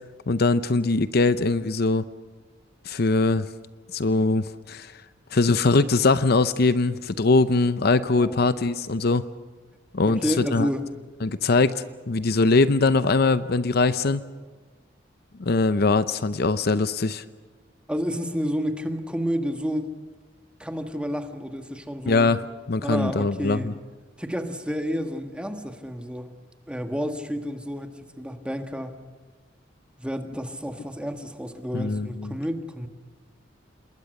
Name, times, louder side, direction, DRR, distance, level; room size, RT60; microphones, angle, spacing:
voice 1, 0.3-2.1 2.8-3.5 3.9-4.9 5.3-9.2 9.9-10.7 11.2-14.2 15.4-17.2 22.1-23.6 31.7-32.3, left 3 dB, 55° left, 13 dB, 0.7 m, -22 dB
voice 2, 8.2-8.5 10.1-10.9 17.9-19.9 20.6-22.3 22.8-23.8 24.2-26.3 26.7-29.0 30.0-32.9, equal, 5° right, 6 dB, 1.6 m, -30 dB
27.5 x 21.0 x 6.5 m, 1.4 s
head